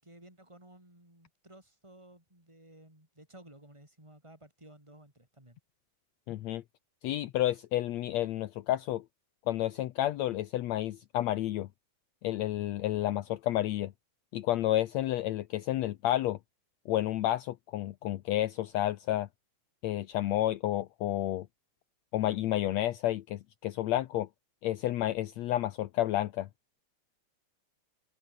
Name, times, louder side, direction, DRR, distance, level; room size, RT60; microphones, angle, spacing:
voice 1, 0.0-5.6, right 1 dB, 10° right, 7.2 m, -55 dB
voice 2, 6.3-6.6 7.0-9.0 9.5-11.7 12.2-13.9 14.3-16.4 16.9-19.3 19.8-21.5 22.1-24.3 24.6-26.5, left 14 dB, 70° left, 2.0 m, -30 dB
open air
omnidirectional pair, 3.5 m